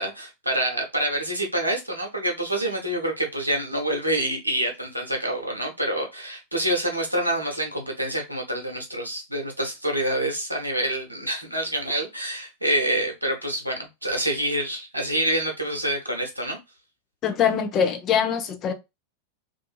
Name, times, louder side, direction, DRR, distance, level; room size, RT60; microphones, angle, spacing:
voice 1, 0.0-16.6, right 1 dB, 85° right, 0.8 m, -27 dB
voice 2, 17.2-18.7, left 7 dB, 30° left, 0.5 m, -23 dB
2.6 x 2.5 x 2.3 m
figure-of-eight pair, 90°, 0 cm